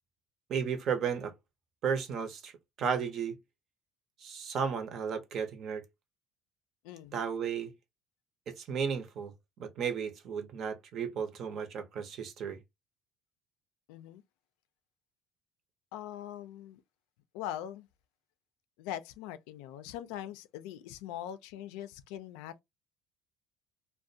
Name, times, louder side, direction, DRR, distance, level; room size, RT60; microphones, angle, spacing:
voice 1, 0.5-1.3 1.8-2.5 2.8-3.4 4.2-5.8 7.1-7.7 8.5-9.3 9.6-12.6, right 6 dB, 50° right, 0.6 m, -34 dB
voice 2, 6.8-7.2 13.9-14.2 15.9-16.8 17.3-17.9 18.8-22.6, left 11 dB, 90° left, 0.3 m, -42 dB
2.4 x 2.1 x 2.6 m
cardioid pair, 120°, 0 cm